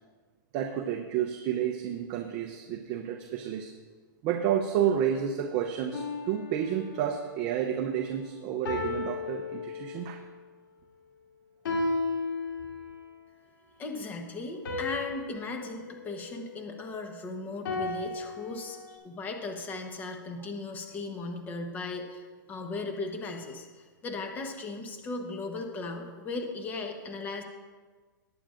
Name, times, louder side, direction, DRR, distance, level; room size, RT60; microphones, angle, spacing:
voice 1, 0.5-3.7 4.2-10.2, right 9 dB, 30° right, 4 dB, 0.6 m, -30 dB
sound 1, 5.9-7.2 8.7-10.3 11.7-13.1 14.7-17.1 17.7-19.0, left 3 dB, 75° left, 2.7 m, -35 dB
voice 2, 13.8-27.4, left 3 dB, 15° left, 4 dB, 1.0 m, -37 dB
19.0 x 8.7 x 2.5 m, 1.4 s
hypercardioid pair, 160°, 11 cm